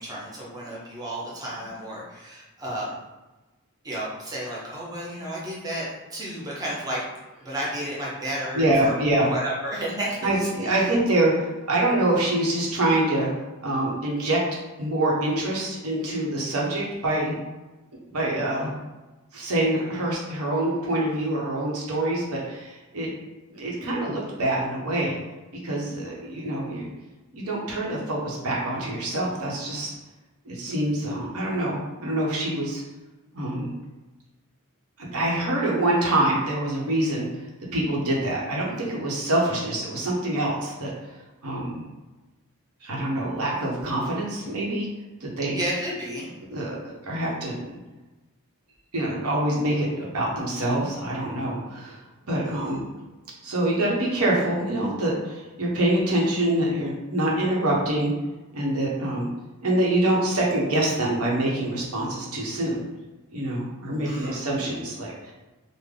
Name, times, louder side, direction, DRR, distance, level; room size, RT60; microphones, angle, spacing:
voice 1, 0.0-2.9 3.8-7.0 7.4-10.9 45.5-46.3 52.5-52.8 64.0-64.4, right 1 dB, 15° right, -6 dB, 0.6 m, -32 dB
voice 2, 8.5-9.3 10.2-13.3 13.6-14.4 14.8-17.4 18.1-18.7 19.3-23.1 23.5-25.2 25.6-26.9 27.3-29.9 30.5-32.8 33.3-33.7 35.0-37.3 37.7-40.9 41.4-41.8 42.8-44.9 45.2-45.6 46.5-47.8 48.9-52.0 52.3-52.9 53.4-58.1 58.5-59.3 59.6-62.8 63.3-65.3, right 1 dB, 85° right, -3 dB, 0.9 m, -25 dB
3.4 x 2.1 x 3.6 m, 1.1 s
head